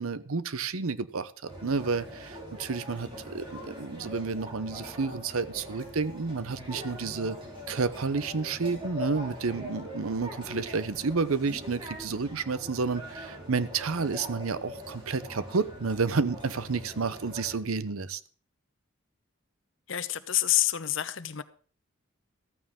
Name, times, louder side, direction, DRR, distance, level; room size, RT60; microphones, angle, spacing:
voice 1, 0.0-7.4 7.7-18.2, right 4 dB, 85° right, 0.8 m, -30 dB
sound 1, 1.5-17.6, equal, 25° right, 3.6 m, -42 dB
voice 2, 19.9-21.4, left 13 dB, 65° left, 0.8 m, -27 dB
14.5 x 13.5 x 3.6 m
head